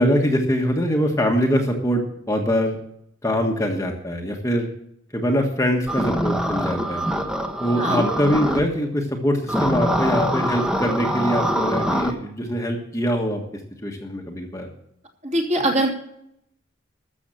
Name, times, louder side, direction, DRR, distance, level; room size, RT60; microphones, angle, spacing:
voice 1, 0.0-2.8 3.2-4.7 5.1-7.0 7.6-13.4 13.8-14.7, equal, 15° left, 2 dB, 1.4 m, -23 dB
sound 1, 5.9-8.6 9.5-12.1, equal, 5° right, 1.1 m, -24 dB
voice 2, 15.2-15.9, right 1 dB, 35° right, 1 dB, 3.0 m, -21 dB
13.5 x 7.1 x 7.5 m, 0.74 s
head